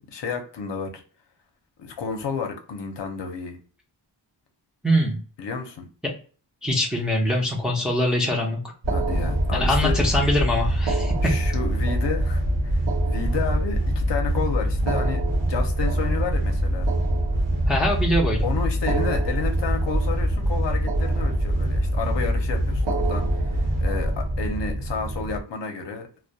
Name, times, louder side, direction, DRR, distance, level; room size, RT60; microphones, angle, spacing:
voice 1, 0.1-1.0 1.8-3.6 5.4-5.8 8.9-9.9 11.2-16.9 18.4-26.1, left 5 dB, 65° left, 4 dB, 0.7 m, -31 dB
voice 2, 4.8-5.2 6.6-8.6 9.5-11.3 17.7-18.4, equal, ahead, -2 dB, 0.5 m, -23 dB
sound 1, 8.8-25.4, equal, 35° right, 0.8 m, -24 dB
sound 2, 8.9-10.1 10.8-14.1 14.7-18.0 18.7-20.6 20.9-21.9 22.7-24.6, right 7 dB, 75° right, 0.7 m, -35 dB
2.2 x 2.2 x 2.6 m, 0.39 s
wide cardioid pair, 145°, 46 cm